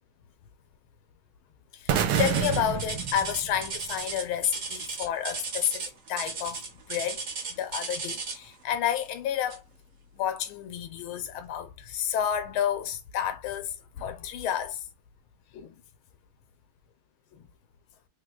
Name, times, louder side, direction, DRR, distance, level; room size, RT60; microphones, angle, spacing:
voice 1, 1.7-6.6 6.9-9.6 10.1-14.9 15.5-15.8 17.3-17.5, left 9 dB, 90° left, 1.5 m, -30 dB
sound 1, 1.9-4.0, right 8 dB, 70° right, 1.1 m, -28 dB
sound 2, 2.2-8.5 9.5-9.8 10.3-10.4 11.1-11.2, right 4 dB, 50° right, 1.1 m, -35 dB
3.7 x 3.3 x 2.3 m
omnidirectional pair, 2.2 m